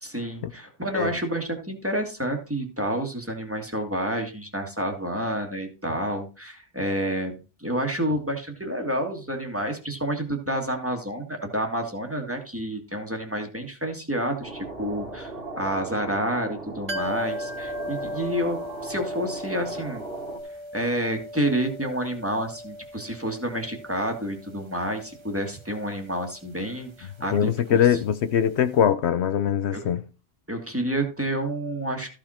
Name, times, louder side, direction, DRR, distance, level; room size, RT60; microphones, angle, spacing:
voice 1, 0.0-20.0 20.7-28.0 29.7-29.8 30.5-32.2, right 1 dB, 10° right, 1.7 m, -29 dB
sound 1, 14.4-20.4, right 3 dB, 55° right, 2.3 m, -38 dB
sound 2, 16.9-28.5 28.7-28.8, equal, 30° right, 0.7 m, -38 dB
voice 2, 27.3-30.0, left 9 dB, 70° left, 0.9 m, -22 dB
13.5 x 5.1 x 4.3 m
omnidirectional pair, 1.2 m